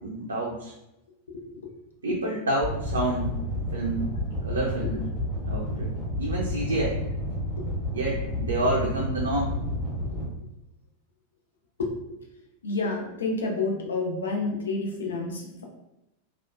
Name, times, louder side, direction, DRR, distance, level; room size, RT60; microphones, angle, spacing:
voice 1, 0.0-0.7 2.0-3.4 3.7-4.1 4.4-5.0 5.5-7.0 7.9-9.6, right 2 dB, 75° right, -3 dB, 0.4 m, -28 dB
voice 2, 1.3-1.7 2.1-2.2 4.8-5.0 10.1-10.2 11.8-11.9 12.6-15.6, left 3 dB, 70° left, 1 dB, 0.5 m, -29 dB
sound 1, 2.6-10.3, left 1 dB, 10° left, 1.1 m, -30 dB
2.9 x 2.0 x 2.3 m, 0.91 s
figure-of-eight pair, 90°, 0 cm